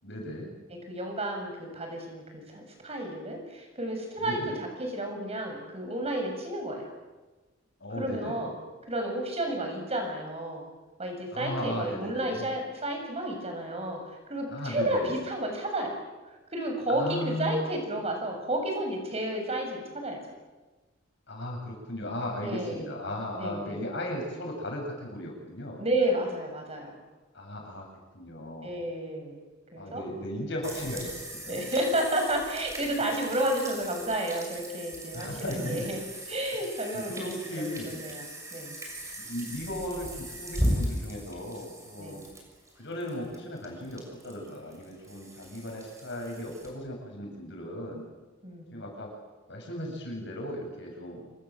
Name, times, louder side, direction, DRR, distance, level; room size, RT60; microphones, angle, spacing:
voice 1, 0.0-0.5 4.2-4.6 7.8-8.5 11.3-12.6 14.5-15.2 16.9-17.7 21.3-25.8 27.3-27.9 28.1-28.7 29.7-31.6 35.1-35.9 36.9-38.0 39.2-42.2 42.8-48.0 48.7-49.1 49.5-51.2, left 1 dB, 60° left, 0 dB, 7.5 m, -36 dB
voice 2, 0.9-6.9 8.0-8.5 8.9-10.7 11.0-14.0 14.3-16.0 16.5-20.2 22.4-22.9 23.4-23.8 25.8-27.0 28.6-29.4 29.7-30.0 31.5-36.0 36.3-38.7 42.0-42.2 48.4-48.7, right 1 dB, 30° right, 3 dB, 7.2 m, -31 dB
sound 1, 30.6-46.7, equal, 15° right, 6.5 m, -37 dB
28.0 x 24.0 x 7.7 m, 1.2 s
head